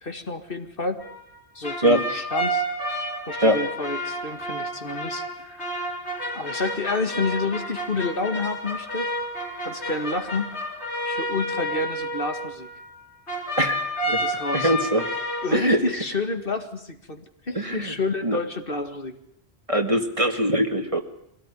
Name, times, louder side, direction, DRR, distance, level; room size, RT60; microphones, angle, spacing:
voice 1, 0.0-1.0 1.6-2.6 3.3-6.0 6.3-9.1 9.6-10.5 11.1-12.7 14.2-14.7 15.4-19.2, left 3 dB, 55° left, 7 dB, 2.1 m, -29 dB
sound 1, 1.0-13.0 13.3-15.6, equal, 85° left, 4.1 m, -30 dB
voice 2, 14.5-15.1 15.5-15.8 17.6-17.9 18.2-18.4 19.7-21.0, right 1 dB, 30° right, 6 dB, 2.0 m, -22 dB
24.0 x 17.5 x 10.0 m, 0.72 s
omnidirectional pair, 1.1 m